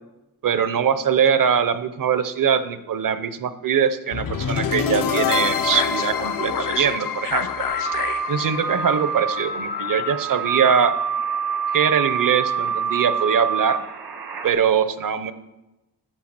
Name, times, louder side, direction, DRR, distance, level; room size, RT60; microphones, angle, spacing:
voice 1, 0.4-7.9 8.3-11.0 11.7-13.8 14.4-15.3, right 7 dB, 55° right, 13 dB, 0.8 m, -22 dB
sound 1, 4.1-10.2, left 7 dB, 60° left, 0.7 m, -26 dB
sound 2, 7.6-14.5, right 5 dB, 75° right, 1.6 m, -26 dB
9.1 x 5.9 x 6.0 m, 0.99 s
cardioid pair, 65°, 38 cm